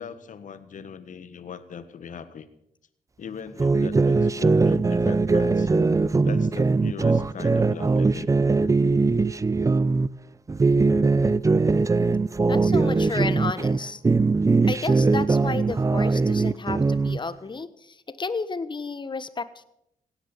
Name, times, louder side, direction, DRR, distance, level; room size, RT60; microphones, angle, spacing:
voice 1, 0.0-2.5 3.2-5.7 6.2-8.3, left 7 dB, 65° left, 12 dB, 1.5 m, -39 dB
sound 1, 3.6-10.1 10.5-13.8 14.0-17.2, right 3 dB, 25° right, 0.5 m, -21 dB
voice 2, 12.5-14.0 14.7-19.6, left 4 dB, 35° left, 14 dB, 1.2 m, -32 dB
17.0 x 9.8 x 7.2 m, 0.78 s
cardioid pair, 65°, 14 cm